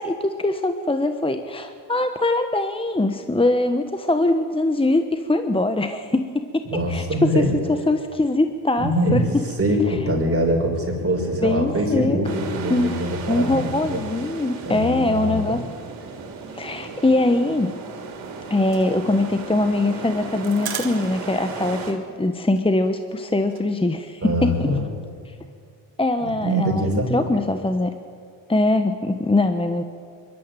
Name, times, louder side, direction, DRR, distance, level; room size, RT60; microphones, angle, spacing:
voice 1, 0.0-7.0 7.3-9.2 11.4-12.2 12.7-13.0 13.3-15.6 16.5-17.7 18.5-24.5 26.0-27.9 28.5-29.8, left 2 dB, 10° left, 8 dB, 1.2 m, -22 dB
voice 2, 6.7-7.5 8.8-14.0 14.6-15.4 24.2-24.9 26.2-27.1, equal, 30° right, 0 dB, 6.0 m, -23 dB
sound 1, 12.2-21.9, right 4 dB, 80° right, 3.1 m, -35 dB
sound 2, 18.2-21.4 21.7-21.8 22.1-22.3 22.6-23.7, right 8 dB, 55° right, 2.1 m, -37 dB
23.0 x 12.5 x 9.2 m, 2.2 s
supercardioid pair, 60°, 45 cm